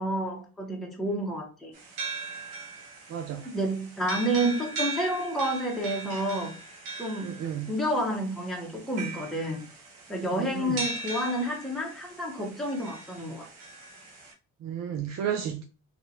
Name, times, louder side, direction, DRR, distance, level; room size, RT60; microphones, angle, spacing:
voice 1, 0.0-1.7 3.4-6.5 7.0-7.4 7.7-9.6 10.1-13.4, right 1 dB, ahead, 1.0 m, -30 dB
sound 1, 1.7-14.3, right 3 dB, 90° right, 0.7 m, -39 dB
voice 2, 3.1-3.4 7.2-7.7 10.3-10.8 14.6-15.6, right 9 dB, 45° right, 0.4 m, -32 dB
2.7 x 2.4 x 2.6 m
hypercardioid pair, 40°, 40 cm